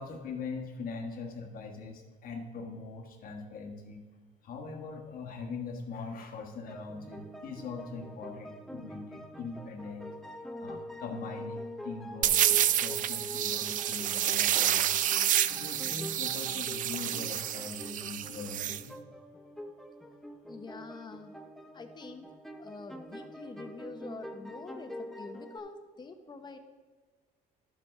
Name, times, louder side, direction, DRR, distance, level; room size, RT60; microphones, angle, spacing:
voice 1, 0.0-4.0 4.4-10.1 10.6-15.0 15.5-19.0, left 4 dB, 60° left, 2 dB, 1.4 m, -42 dB
sound 1, 6.7-25.6, equal, ahead, 0.7 m, -45 dB
sound 2, 12.2-18.8, right 11 dB, 50° right, 0.4 m, -29 dB
voice 2, 20.5-21.3 21.7-22.3 22.6-26.6, left 3 dB, 25° left, 7 dB, 0.9 m, -45 dB
12.0 x 7.2 x 3.3 m, 1.4 s
cardioid pair, 110°, 17 cm